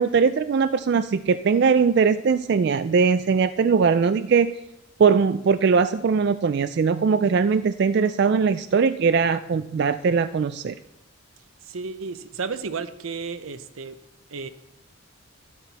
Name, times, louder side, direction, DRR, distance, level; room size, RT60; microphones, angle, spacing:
voice 1, 0.0-4.6 5.0-10.7, right 5 dB, 50° right, 12 dB, 0.3 m, -20 dB
voice 2, 11.7-14.0 14.3-14.5, right 5 dB, 75° right, 12 dB, 0.7 m, -32 dB
12.0 x 11.5 x 4.1 m, 0.87 s
head